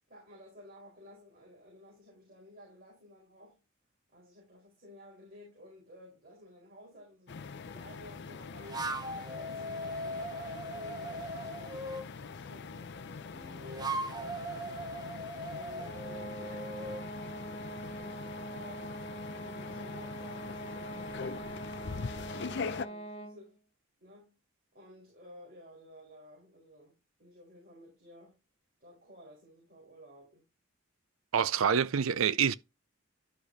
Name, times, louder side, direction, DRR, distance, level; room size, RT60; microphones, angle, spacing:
voice 1, 0.1-3.6 4.1-14.9 15.5-18.9 19.3-23.5 24.0-24.3 24.7-28.4 28.8-30.4, equal, 45° right, 4.8 m, -55 dB
sound 1, 7.3-22.9, left 5 dB, 55° left, 0.5 m, -43 dB
sound 2, 8.6-12.1 13.3-17.1, right 1 dB, 20° right, 0.8 m, -39 dB
sound 3, 15.8-23.5, right 1 dB, 30° left, 0.9 m, -43 dB
voice 2, 31.3-32.5, right 7 dB, 80° right, 0.5 m, -26 dB
12.0 x 4.9 x 2.8 m
head